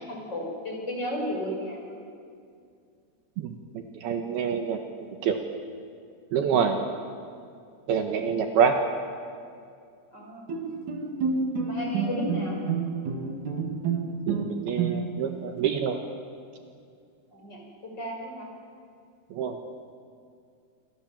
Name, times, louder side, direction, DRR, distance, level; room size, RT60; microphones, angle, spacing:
voice 1, 0.0-2.0 3.8-3.9 8.1-8.3 10.1-10.5 11.6-12.6 17.3-17.6 18.0-18.5, equal, 25° left, -1 dB, 6.2 m, -34 dB
voice 2, 3.4-4.8 5.2-5.4 6.3-6.9 7.9-8.8 14.3-16.0 19.3-19.6, right 7 dB, 70° right, 4 dB, 2.9 m, -26 dB
Bowed string instrument, 10.5-15.3, right 5 dB, 50° right, 3.1 m, -29 dB
28.5 x 24.5 x 7.3 m, 2.3 s
omnidirectional pair, 5.1 m